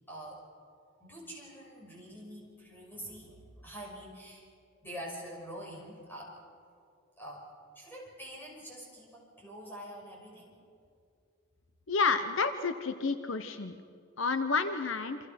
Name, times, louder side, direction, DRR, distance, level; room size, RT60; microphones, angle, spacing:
voice 1, 0.1-0.4 1.0-4.5 4.8-6.3 7.2-7.5 7.7-10.6, equal, 10° left, -2 dB, 5.8 m, -45 dB
voice 2, 11.9-13.8 14.2-15.2, left 4 dB, 70° left, 9 dB, 0.9 m, -30 dB
28.0 x 26.0 x 6.0 m, 2.4 s
head